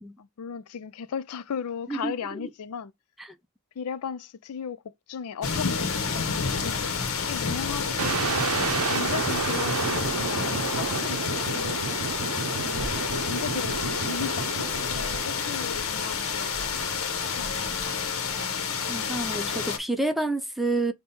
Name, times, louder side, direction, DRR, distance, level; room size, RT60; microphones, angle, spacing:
voice 1, 0.2-2.9 3.8-4.8 5.1-6.9 7.3-8.4 8.9-11.8 13.2-16.7 17.3-18.3, left 7 dB, 80° left, 0.4 m, -36 dB
voice 2, 1.9-2.5 3.2-3.4 12.2-13.0 18.9-20.9, right 2 dB, ahead, 0.4 m, -30 dB
sound 1, 5.4-19.8, left 5 dB, 65° left, 0.9 m, -29 dB
sound 2, 8.0-15.8, right 5 dB, 75° right, 0.6 m, -31 dB
5.3 x 2.2 x 4.2 m
head